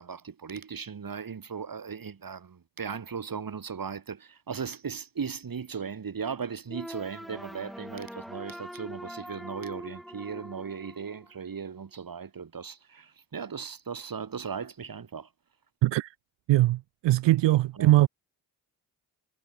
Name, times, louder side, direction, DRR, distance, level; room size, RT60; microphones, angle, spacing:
voice 1, 0.0-15.3 17.8-17.9, right 6 dB, 50° right, 2.3 m, -37 dB
sound 1, 6.7-11.7, equal, ahead, 5.5 m, -43 dB
voice 2, 15.8-16.1 16.5-18.1, right 16 dB, 80° right, 0.6 m, -21 dB
supercardioid pair, 45°, 43 cm